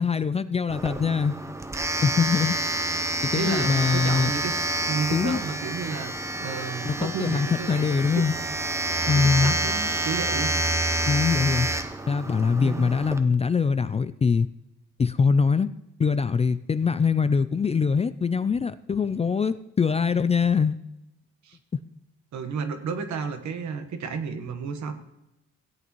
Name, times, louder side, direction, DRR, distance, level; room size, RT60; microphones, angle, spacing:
voice 1, 0.0-1.4 2.0-2.6 3.2-4.3 5.1-5.4 6.8-8.3 9.1-9.5 11.1-11.7 12.1-14.5 15.0-15.7 16.0-20.8, left 5 dB, 20° left, 14 dB, 0.3 m, -23 dB
Domestic sounds home sounds, 0.7-13.2, right 2 dB, 10° right, 0.8 m, -28 dB
voice 2, 3.3-7.8 8.1-8.2 9.0-10.5 12.6-13.0 21.4-21.6 22.3-24.9, right 5 dB, 70° right, 7 dB, 1.4 m, -32 dB
16.5 x 8.4 x 3.1 m, 0.89 s
cardioid pair, 90°, 30 cm